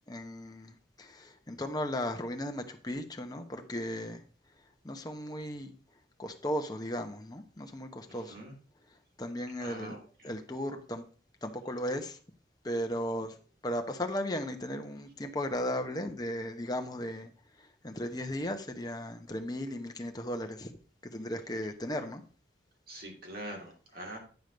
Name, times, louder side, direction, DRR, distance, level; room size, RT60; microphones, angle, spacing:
voice 1, 0.1-4.2 4.8-5.7 6.2-8.4 9.2-10.0 10.2-11.0 11.4-12.2 12.6-13.3 13.6-17.3 17.6-20.7 21.0-22.2, equal, 20° left, 1.0 m, -36 dB
voice 2, 8.1-8.5 9.6-10.0 22.9-24.2, right 1 dB, 55° right, 2.5 m, -43 dB
9.3 x 5.1 x 5.1 m
head